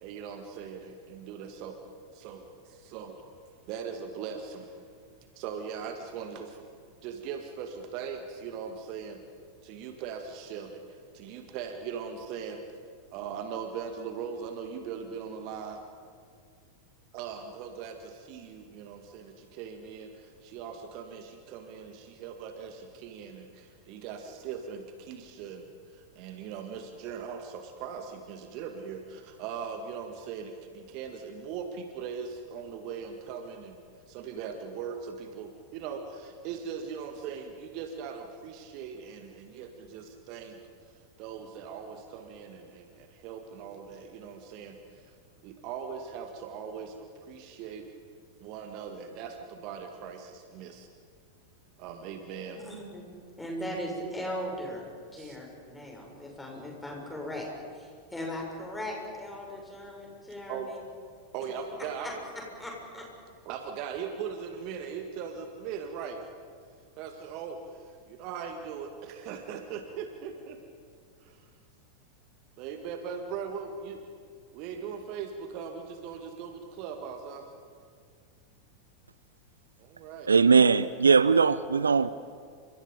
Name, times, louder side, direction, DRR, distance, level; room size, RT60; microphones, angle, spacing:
voice 1, 0.0-1.8 2.1-3.2 3.7-4.7 5.4-6.6 7.0-9.2 9.6-10.8 11.1-12.6 13.1-15.8 17.1-25.6 25.9-33.8 34.1-40.6 41.2-44.8 45.4-47.9 48.4-50.9 51.8-52.6 55.2-55.4 60.5-60.7 61.3-62.1 63.5-66.2 67.0-67.6 68.1-70.6 71.2-71.4 72.6-74.0 74.5-77.5 79.8-80.3, right 6 dB, 45° right, 1.9 m, -40 dB
voice 2, 52.5-53.1 53.4-54.8 55.1-57.5 57.7-60.8 62.0-62.1 62.6-63.0, equal, 5° left, 6.9 m, -38 dB
voice 3, 80.3-82.1, right 5 dB, 75° right, 0.5 m, -20 dB
30.0 x 26.5 x 5.3 m
figure-of-eight pair, 90°, 0 cm